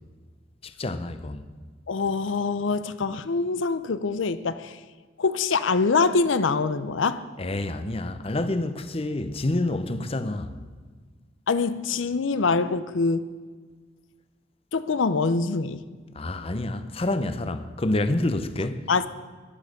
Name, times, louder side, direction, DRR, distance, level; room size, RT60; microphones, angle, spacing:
voice 1, 0.6-1.5 7.4-10.5 16.2-18.8, left 2 dB, 30° left, 0.7 m, -28 dB
voice 2, 1.9-4.8 5.2-7.2 11.5-13.3 14.7-15.8 18.9-19.1, left 4 dB, 85° left, 0.6 m, -24 dB
12.0 x 11.0 x 6.6 m
head